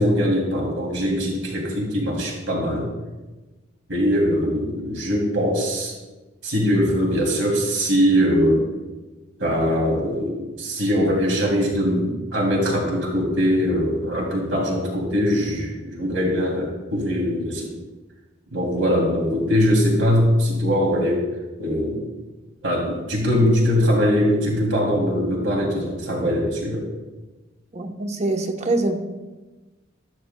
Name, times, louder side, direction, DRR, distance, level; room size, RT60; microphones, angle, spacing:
voice 1, 0.0-2.9 3.9-5.9 6.4-8.6 9.4-17.7 18.5-21.2 21.6-22.1 22.6-26.8, equal, 75° right, 2.7 m, -21 dB
voice 2, 27.7-29.0, right 2 dB, 35° right, 0.9 m, -24 dB
13.5 x 12.5 x 2.2 m
head